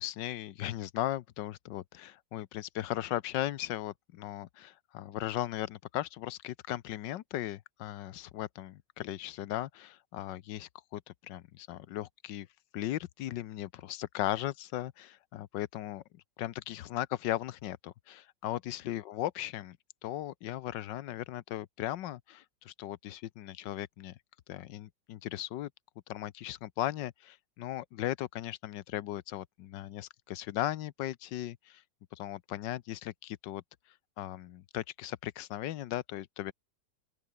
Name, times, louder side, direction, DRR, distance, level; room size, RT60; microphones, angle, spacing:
voice 1, 0.0-12.5 12.7-16.0 16.4-19.8 20.0-24.2 24.5-25.7 26.1-31.8 32.1-33.6 34.2-36.5, left 13 dB, 80° left, 1.4 m, -37 dB
open air
omnidirectional pair, 2.0 m